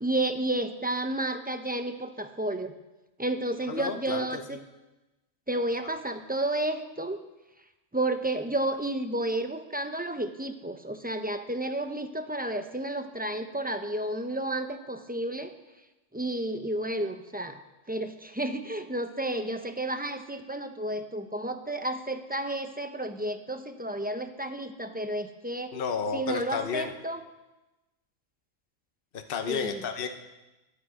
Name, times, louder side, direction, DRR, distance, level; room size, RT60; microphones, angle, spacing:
voice 1, 0.0-2.7 3.2-4.6 5.5-7.2 7.9-15.5 16.1-17.6 17.9-25.7 26.1-27.2 29.5-29.8, right 1 dB, 10° right, 7 dB, 0.5 m, -31 dB
voice 2, 3.7-4.4 25.7-26.9 29.1-30.1, left 6 dB, 45° left, 6 dB, 1.1 m, -32 dB
22.5 x 9.1 x 5.0 m, 1.0 s
omnidirectional pair, 1.4 m